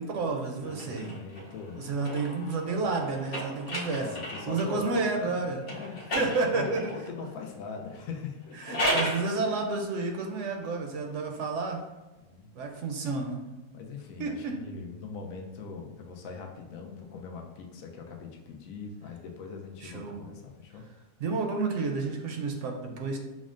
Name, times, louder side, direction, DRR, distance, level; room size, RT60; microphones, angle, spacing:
voice 1, 0.0-1.2 1.8-4.1 4.5-5.6 6.1-6.9 8.6-11.8 12.6-13.4 14.2-14.6 19.8-20.2 21.2-23.2, right 3 dB, 70° right, 3 dB, 0.8 m, -30 dB
voice 2, 0.6-2.1 2.8-2.9 3.9-5.3 5.6-6.3 6.5-9.0 9.4-9.7 12.2-12.5 13.7-20.8, left 5 dB, 85° left, 2 dB, 1.0 m, -41 dB
sound 1, 0.7-4.8 5.6-7.0 8.4-9.3, equal, 50° left, 0.9 m, -34 dB
6.0 x 2.1 x 2.4 m, 1.1 s
omnidirectional pair, 1.4 m